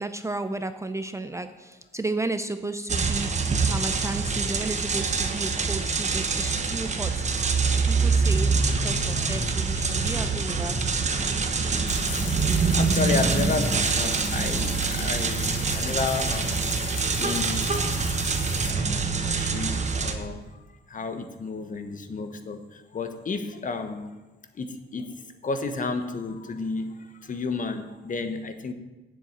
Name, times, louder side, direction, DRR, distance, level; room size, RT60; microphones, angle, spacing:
voice 1, 0.0-3.3 3.6-10.9 11.6-12.1, right 2 dB, 15° right, 9 dB, 0.5 m, -33 dB
sound 1, 2.9-20.1, right 4 dB, 35° right, 1.2 m, -25 dB
sound 2, 11.9-18.7, left 10 dB, 75° left, 0.7 m, -38 dB
voice 2, 12.5-16.7 17.1-18.0 18.7-20.6 20.9-24.1 24.5-28.7, left 4 dB, 40° left, 8 dB, 1.2 m, -32 dB
7.4 x 7.1 x 8.2 m, 1.1 s
cardioid pair, 90°, 20 cm